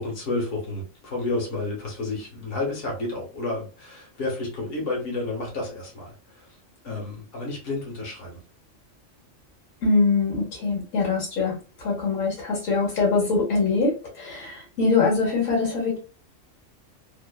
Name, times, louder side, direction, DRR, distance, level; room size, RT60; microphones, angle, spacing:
voice 1, 0.0-6.5 6.8-8.4, left 2 dB, 70° left, -3 dB, 1.4 m, -31 dB
voice 2, 9.8-16.0, left 4 dB, 85° left, -3 dB, 1.4 m, -23 dB
3.0 x 2.1 x 2.2 m, 0.36 s
omnidirectional pair, 1.3 m